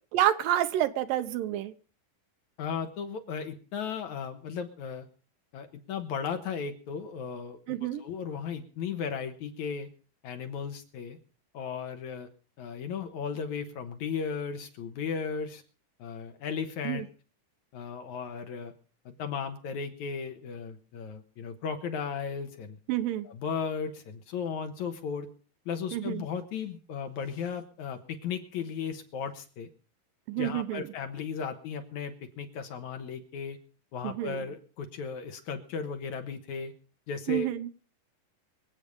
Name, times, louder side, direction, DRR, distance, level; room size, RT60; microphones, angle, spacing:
voice 1, 0.1-1.7 7.7-8.0 16.8-17.1 22.9-23.3 25.9-26.2 30.3-30.9 34.0-34.4 37.3-37.7, right 12 dB, 75° right, 11 dB, 2.5 m, -28 dB
voice 2, 2.6-5.1 5.5-9.9 10.2-11.2 11.5-12.3 12.6-15.6 16.0-17.1 17.7-18.7 19.1-22.8 23.2-25.3 25.7-29.7 30.4-33.6 33.9-36.7 37.1-37.5, left 6 dB, 65° left, 7 dB, 2.4 m, -36 dB
24.5 x 8.4 x 5.3 m, 0.38 s
omnidirectional pair, 4.2 m